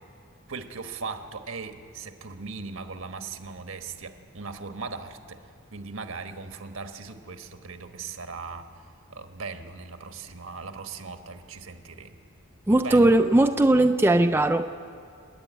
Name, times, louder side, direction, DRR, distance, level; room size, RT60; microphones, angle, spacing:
voice 1, 0.5-5.4 5.7-8.8 9.1-12.2 12.7-13.1, right 4 dB, 70° right, 7 dB, 1.3 m, -38 dB
voice 2, 12.7-14.7, right 1 dB, 10° right, 6 dB, 0.4 m, -19 dB
29.0 x 10.5 x 9.2 m, 2.5 s
head